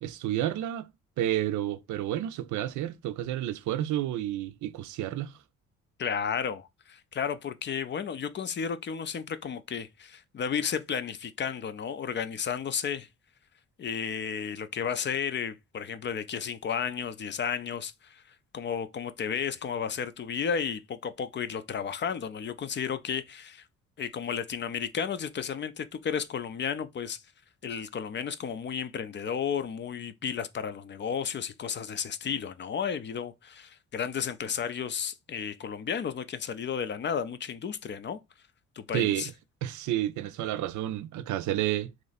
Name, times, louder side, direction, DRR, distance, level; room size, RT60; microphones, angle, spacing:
voice 1, 0.0-0.9 1.2-5.4 38.9-39.3 39.6-41.9, right 13 dB, 75° right, 0.5 m, -30 dB
voice 2, 6.0-13.1 13.8-18.2 18.5-23.6 24.0-27.2 27.6-38.2 38.8-39.3, left 7 dB, 40° left, 0.4 m, -33 dB
3.0 x 2.6 x 4.0 m
cardioid pair, 90°, 30 cm